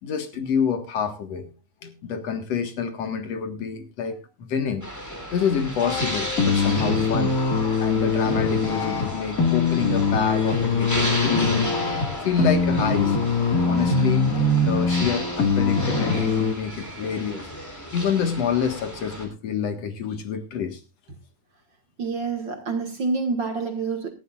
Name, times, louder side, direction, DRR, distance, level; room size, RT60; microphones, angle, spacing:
voice 1, 0.0-1.5 1.8-4.8 5.3-11.8 12.2-13.2 13.7-14.3 14.6-17.5 17.9-20.8, left 7 dB, 60° left, 2.6 m, -27 dB
sound 1, 4.8-19.3, equal, 5° left, 3.0 m, -34 dB
sound 2, 5.8-16.5, left 3 dB, 30° left, 2.1 m, -23 dB
voice 2, 22.0-24.1, right 4 dB, 45° right, 2.3 m, -27 dB
18.5 x 13.5 x 2.4 m
omnidirectional pair, 3.4 m